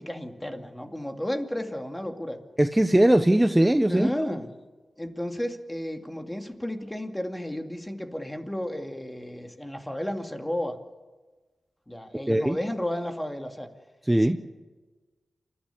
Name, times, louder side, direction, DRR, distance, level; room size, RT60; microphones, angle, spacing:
voice 1, 0.0-2.4 3.9-4.5 5.0-10.8 11.9-13.7 14.2-14.4, left 1 dB, 10° left, 4 dB, 2.4 m, -33 dB
voice 2, 2.6-4.1 12.3-12.6 14.1-14.4, right 1 dB, 10° right, 7 dB, 1.0 m, -20 dB
28.0 x 12.5 x 8.4 m, 1.3 s
cardioid pair, 60°, 0 cm